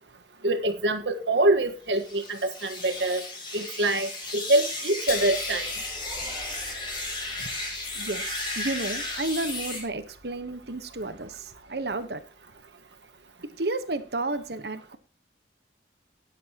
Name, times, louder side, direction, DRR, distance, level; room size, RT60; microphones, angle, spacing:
voice 1, 0.4-3.2 3.5-5.7, right 2 dB, 90° right, 1.5 m, -25 dB
sound 1, 1.9-9.8, left 2 dB, 30° left, 4.9 m, -34 dB
sound 2, 5.1-12.1, left 5 dB, 55° left, 2.2 m, -43 dB
sound 3, 5.3-7.9, right 1 dB, 15° right, 2.7 m, -48 dB
voice 2, 7.9-12.2 13.6-15.0, right 2 dB, 70° right, 1.2 m, -32 dB
19.0 x 8.1 x 3.0 m
head